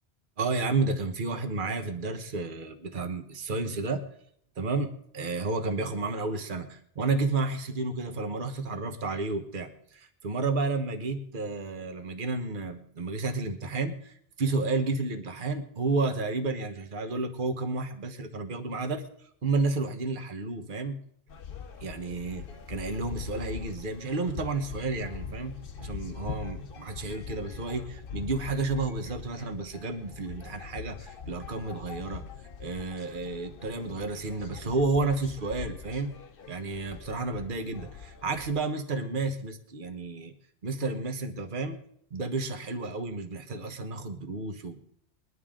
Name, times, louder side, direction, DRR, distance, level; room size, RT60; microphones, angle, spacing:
voice 1, 0.4-4.1 4.6-21.0 21.8-32.2 32.6-36.1 36.5-40.3 40.6-41.8 42.1-44.8, right 3 dB, 50° right, 6 dB, 1.3 m, -31 dB
sound 1, 21.3-38.6, left 6 dB, 55° left, 0.9 m, -42 dB
21.0 x 11.0 x 3.8 m, 0.67 s
omnidirectional pair, 1.2 m